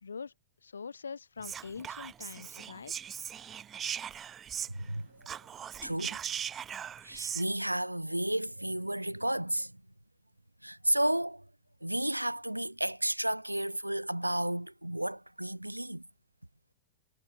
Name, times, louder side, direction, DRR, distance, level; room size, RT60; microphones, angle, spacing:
voice 1, 0.0-0.3 0.6-2.9, left 5 dB, 75° left, 1.6 m, -43 dB
Whispering, 1.4-4.9 5.2-7.4, right 9 dB, 25° right, 0.6 m, -39 dB
voice 2, 4.7-5.1 5.8-6.2 7.0-9.8 10.6-11.4 11.8-16.1, right 1 dB, 85° right, 1.5 m, -32 dB
figure-of-eight pair, 90°, 0 cm